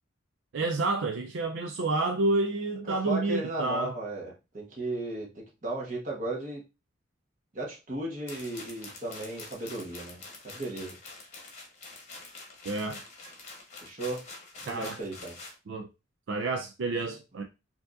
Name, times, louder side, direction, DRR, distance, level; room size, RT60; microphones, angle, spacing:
voice 1, 0.5-3.9 12.7-13.0 14.7-15.0 15.7-15.9 16.3-17.4, right 2 dB, 65° right, 0.4 m, -29 dB
voice 2, 2.9-5.3 5.6-6.6 7.5-11.0 13.8-14.2 14.6-15.4, right 2 dB, 40° right, 1.3 m, -35 dB
sound 1, 8.3-15.6, left 3 dB, 35° left, 1.0 m, -46 dB
4.6 x 2.8 x 2.4 m
head